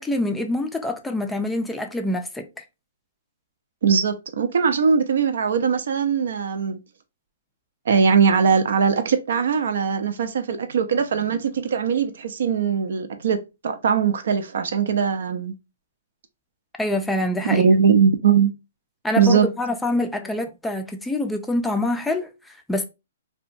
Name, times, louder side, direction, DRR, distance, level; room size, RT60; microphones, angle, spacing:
voice 1, 0.0-2.6 16.8-17.7 19.0-22.8, left 1 dB, 5° left, 0.3 m, -25 dB
voice 2, 3.8-6.8 7.9-13.4 13.6-15.5 17.4-18.5 19.2-19.5, right 6 dB, 70° right, 0.4 m, -20 dB
2.6 x 2.2 x 2.5 m
hypercardioid pair, 140°, 0 cm